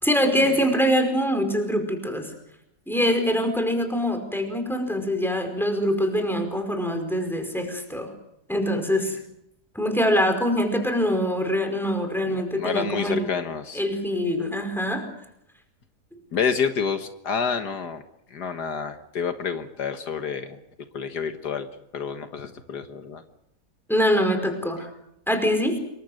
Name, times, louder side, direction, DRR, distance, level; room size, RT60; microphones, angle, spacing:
voice 1, 0.0-2.3 2.9-8.1 8.5-9.2 9.7-13.3 13.7-15.1 23.9-24.9 25.3-25.8, equal, ahead, 5 dB, 5.0 m, -24 dB
voice 2, 12.3-13.8 16.3-18.0 18.3-20.6 20.9-21.7 21.9-23.2, left 6 dB, 75° left, 8 dB, 2.0 m, -29 dB
27.0 x 23.5 x 6.5 m, 0.80 s
omnidirectional pair, 1.8 m